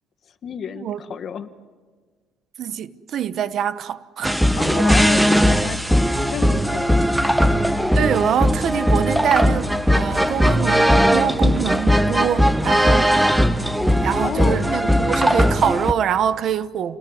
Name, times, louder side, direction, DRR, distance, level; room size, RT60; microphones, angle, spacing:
voice 1, 0.4-1.5 4.5-7.0 14.2-14.7, left 7 dB, 45° left, 1.5 m, -30 dB
voice 2, 2.6-4.4 7.9-13.2 14.0-17.0, right 9 dB, 50° right, 1.0 m, -24 dB
sound 1, 4.2-15.9, equal, 5° right, 0.9 m, -18 dB
29.0 x 20.0 x 9.6 m
cardioid pair, 130°, 0 cm